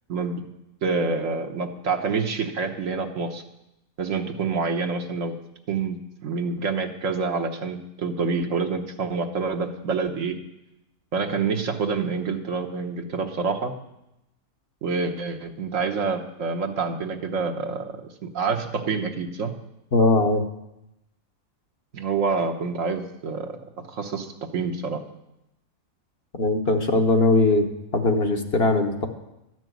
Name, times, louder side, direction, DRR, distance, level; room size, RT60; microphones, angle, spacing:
voice 1, 0.1-0.4 0.8-3.4 4.0-5.3 5.7-10.4 11.1-13.7 14.8-19.5 21.9-23.6 23.9-24.3 24.5-25.0, right 4 dB, 65° right, 3 dB, 1.4 m, -27 dB
voice 2, 19.9-20.4 26.4-27.7 27.9-29.1, left 2 dB, 50° left, 4 dB, 1.2 m, -20 dB
13.0 x 6.2 x 9.1 m, 0.89 s
omnidirectional pair, 1.5 m